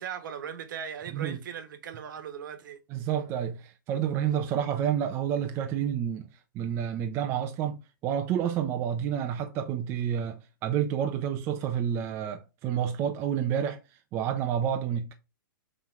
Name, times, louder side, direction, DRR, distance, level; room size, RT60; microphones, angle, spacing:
voice 1, 0.0-2.8, right 8 dB, 60° right, 1.4 m, -38 dB
voice 2, 2.9-6.3 6.5-13.8 14.1-15.1, right 9 dB, 20° right, 0.6 m, -29 dB
5.6 x 3.9 x 4.6 m
hypercardioid pair, 165°, 12 cm